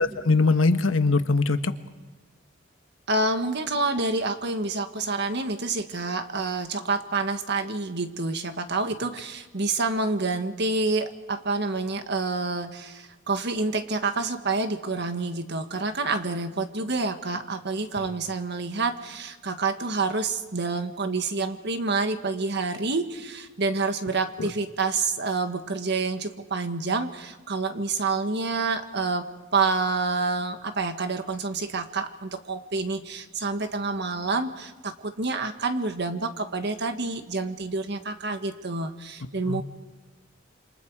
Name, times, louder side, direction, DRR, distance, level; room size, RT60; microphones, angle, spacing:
voice 1, 0.0-1.7 18.0-18.1 24.4-24.5 39.5-39.6, left 3 dB, 85° left, 9 dB, 1.3 m, -22 dB
voice 2, 3.1-29.3 29.5-39.6, right 3 dB, 60° right, 7 dB, 1.8 m, -28 dB
28.0 x 26.0 x 4.9 m, 1.2 s
head